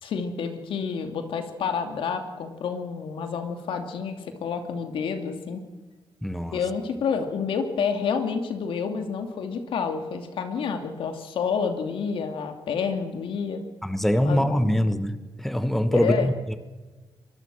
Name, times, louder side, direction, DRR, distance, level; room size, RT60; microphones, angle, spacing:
voice 1, 0.0-5.6 6.5-13.6 14.2-14.8 15.9-16.3, left 6 dB, 80° left, 6 dB, 2.7 m, -29 dB
voice 2, 6.2-6.6 13.8-16.6, equal, 5° left, 10 dB, 1.2 m, -24 dB
23.5 x 21.5 x 6.4 m, 1.3 s
cardioid pair, 105°, 9 cm